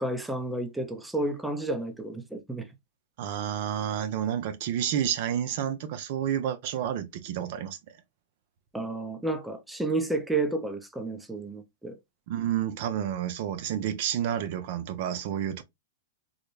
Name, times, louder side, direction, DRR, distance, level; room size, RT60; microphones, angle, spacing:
voice 1, 0.0-2.7 8.7-12.0, right 2 dB, 5° right, 0.6 m, -31 dB
voice 2, 3.2-8.0 12.3-15.6, right 10 dB, 55° right, 0.5 m, -30 dB
3.9 x 2.1 x 3.1 m
hypercardioid pair, 130°, 0 cm